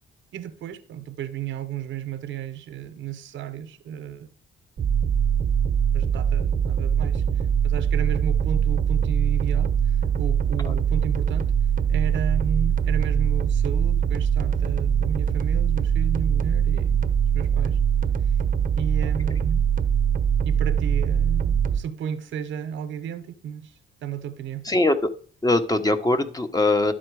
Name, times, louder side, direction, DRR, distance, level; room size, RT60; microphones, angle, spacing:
voice 1, 0.3-4.3 5.9-7.2 7.6-11.5 11.9-17.0 17.3-17.8 18.8-19.6 20.4-24.7, right 8 dB, 75° right, 0.9 m, -33 dB
sound 1, 4.8-21.8, right 8 dB, 45° right, 0.8 m, -22 dB
voice 2, 24.7-25.1 25.4-26.9, left 2 dB, 20° left, 1.0 m, -21 dB
12.0 x 4.4 x 4.8 m
cardioid pair, 90°, 20 cm